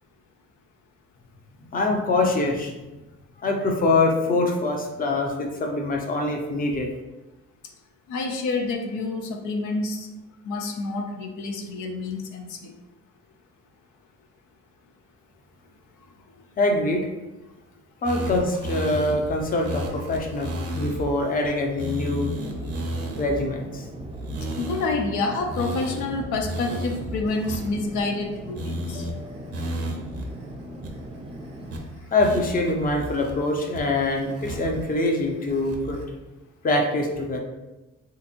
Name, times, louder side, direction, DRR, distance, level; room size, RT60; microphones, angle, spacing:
voice 1, 1.7-2.7 3.4-6.9 16.6-17.1 18.0-22.4 23.2-23.8 32.1-36.0 36.6-37.4, left 2 dB, 30° left, 2 dB, 0.6 m, -24 dB
voice 2, 8.1-10.1 10.5-12.7 24.6-29.1, left 3 dB, 80° left, 2 dB, 0.5 m, -28 dB
sound 1, 18.1-21.1 21.4-21.5 21.8-23.5 24.1-25.1 25.4-28.3 28.6-29.1 29.5-30.3 30.5-30.6 30.8-31.3 31.7-31.8 32.2-33.3 33.7-34.9 35.2-36.0, right 1 dB, 50° right, 0.7 m, -33 dB
sound 2, 22.3-31.8, right 1 dB, 20° right, 0.4 m, -40 dB
3.5 x 2.9 x 2.5 m, 1.1 s
cardioid pair, 90°, 30 cm